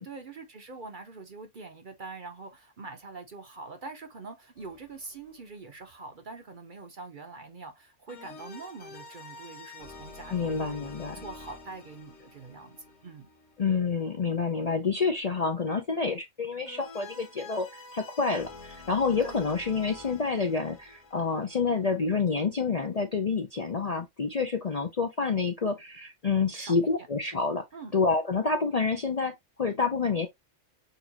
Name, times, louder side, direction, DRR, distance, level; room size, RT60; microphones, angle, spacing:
voice 1, 0.0-10.9 11.2-12.8 13.0-13.3 19.2-19.4 26.5-26.9 27.7-27.9, right 3 dB, 45° right, 0.8 m, -44 dB
sound 1, 4.6-5.5 8.1-14.1 16.7-22.3, left 3 dB, 60° left, 1.6 m, -48 dB
voice 2, 10.3-11.2 13.6-17.7 17.9-27.6 27.9-30.3, left 4 dB, 40° left, 0.5 m, -28 dB
6.6 x 2.4 x 2.9 m
omnidirectional pair, 1.4 m